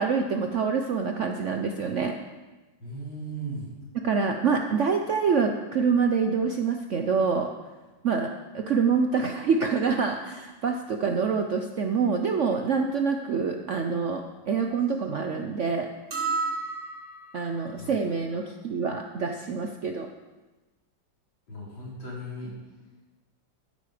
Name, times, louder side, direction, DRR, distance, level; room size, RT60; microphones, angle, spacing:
voice 1, 0.0-2.1 4.0-7.5 8.0-15.9 17.3-20.1, right 5 dB, 70° right, 4 dB, 0.7 m, -26 dB
voice 2, 2.8-3.7 17.7-17.9 18.3-18.4 21.5-22.5, right 1 dB, 85° left, -6 dB, 4.5 m, -37 dB
sound 1, 16.1-17.5, right 4 dB, 40° right, 2.4 m, -31 dB
13.0 x 9.5 x 5.0 m, 1.2 s
omnidirectional pair, 2.1 m